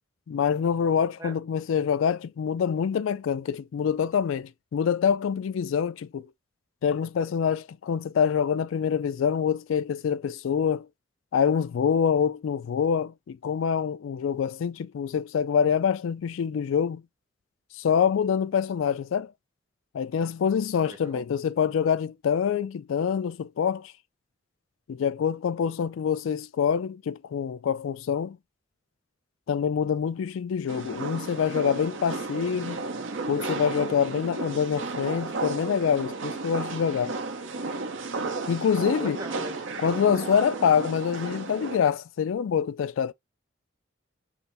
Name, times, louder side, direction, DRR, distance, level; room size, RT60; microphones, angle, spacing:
voice 1, 0.3-6.3 6.8-10.9 11.3-17.0 17.8-19.3 19.9-23.9 24.9-28.4 29.5-32.8 33.3-37.2 38.5-39.2 39.8-43.1, left 7 dB, 85° left, 0.3 m, -26 dB
voice 2, 20.8-21.2 39.0-39.9, right 1 dB, 15° right, 0.9 m, -40 dB
sound 1, 30.7-41.8, right 3 dB, 80° right, 0.9 m, -33 dB
5.6 x 2.1 x 4.1 m
head